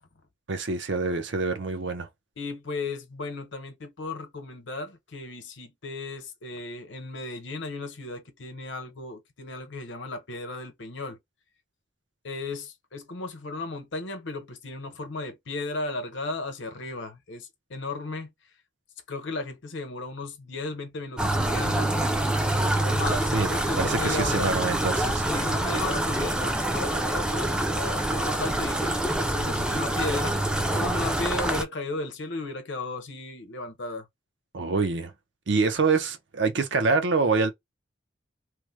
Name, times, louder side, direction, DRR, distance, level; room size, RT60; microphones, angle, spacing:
voice 1, 0.5-2.1 23.3-23.5 23.8-25.2 34.5-35.1 35.5-37.5, right 4 dB, 70° right, 0.6 m, -25 dB
voice 2, 2.4-11.2 12.2-18.3 19.1-21.9 22.8-24.5 25.3-30.4 30.7-34.1, left 2 dB, 80° left, 0.9 m, -35 dB
sound 1, 21.2-31.6, right 1 dB, 5° right, 0.3 m, -26 dB
3.2 x 2.0 x 3.1 m
head